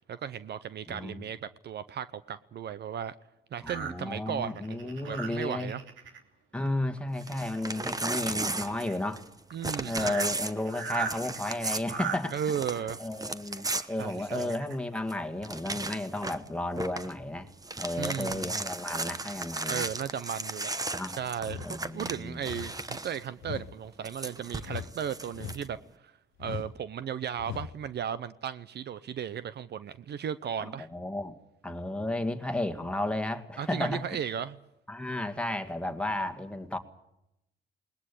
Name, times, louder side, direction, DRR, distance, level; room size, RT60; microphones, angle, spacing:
voice 1, 0.0-3.1 3.5-5.8 9.5-10.2 12.3-13.0 14.0-14.6 18.0-18.6 19.7-20.7 21.2-25.8 26.0-26.1 26.4-30.9 33.6-34.6, right 8 dB, 55° right, 15 dB, 0.8 m, -35 dB
voice 2, 0.9-1.2 3.6-5.7 6.5-9.2 9.8-12.3 13.0-17.5 17.8-19.9 20.9-21.2 21.6-22.4 30.9-31.3 31.6-34.1 34.9-36.8, left 1 dB, 5° left, 5 dB, 2.0 m, -33 dB
sound 1, 3.7-6.2 6.7-7.0 7.3-9.0 9.5-9.6 9.8-12.2 13.2-14.8 15.3-15.4 15.8-15.9, right 6 dB, 75° right, 2.9 m, -39 dB
Crumpling crinkling / Tearing, 7.2-9.3 9.6-14.7 15.1-15.2 15.4-16.5 16.8-17.1 17.5-23.2 24.0-25.6, right 2 dB, 20° right, 1.1 m, -36 dB
sound 2, 21.4-21.8 22.4-22.8 23.4-23.8 24.6-25.0 25.3-25.8 26.4-26.8 27.4-27.8, left 10 dB, 85° left, 1.0 m, -40 dB
20.5 x 19.5 x 8.4 m, 0.86 s
cardioid pair, 90°, 20 cm